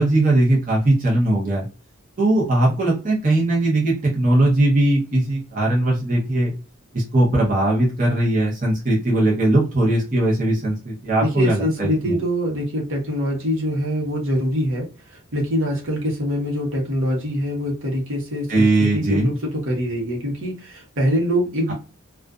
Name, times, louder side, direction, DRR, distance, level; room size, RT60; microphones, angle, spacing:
voice 1, 0.0-1.7 2.2-6.5 6.9-12.2 18.5-19.3 21.7-21.8, right 1 dB, 40° right, -4 dB, 0.8 m, -19 dB
voice 2, 11.2-21.7, equal, 65° right, -1 dB, 1.0 m, -24 dB
2.5 x 2.4 x 2.3 m, 0.33 s
head